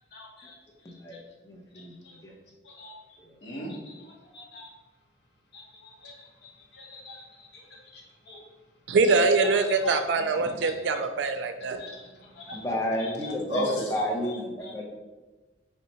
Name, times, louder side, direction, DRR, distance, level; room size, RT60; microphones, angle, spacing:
voice 1, 0.1-0.6 0.8-1.2 1.7-2.2 2.6-4.7 5.5-8.4 9.0-9.1 9.4-10.0 10.6-10.7 11.8-12.6 13.0-14.3 14.6-14.7, equal, 70° left, -2 dB, 1.0 m, -39 dB
voice 2, 0.8-1.2 1.4-2.3 3.3-3.4 10.4-10.6 12.5-14.8, left 1 dB, 15° left, -1 dB, 0.6 m, -32 dB
voice 3, 8.9-11.8, right 3 dB, 85° right, 8 dB, 0.4 m, -23 dB
3.3 x 2.7 x 4.2 m, 1.2 s
head